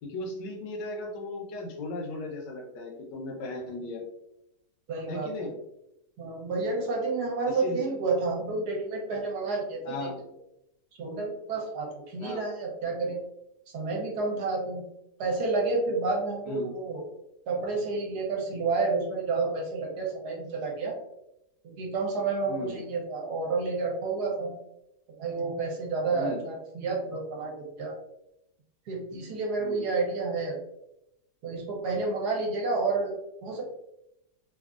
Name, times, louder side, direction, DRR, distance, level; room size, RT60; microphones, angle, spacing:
voice 1, 0.0-4.0 5.1-5.5 7.5-7.9 9.8-10.2 12.2-12.4 16.4-16.7 22.4-22.8 26.1-26.4 29.6-29.9, left 2 dB, 80° left, 0 dB, 1.4 m, -36 dB
voice 2, 4.9-5.5 6.2-9.9 11.0-13.2 13.7-14.8 15.2-17.0 17.5-21.0 21.6-24.5 25.2-27.9 28.9-30.6 31.4-33.1 33.4-33.6, right 3 dB, 70° right, -1 dB, 1.3 m, -30 dB
3.4 x 2.4 x 2.4 m, 0.83 s
omnidirectional pair, 1.9 m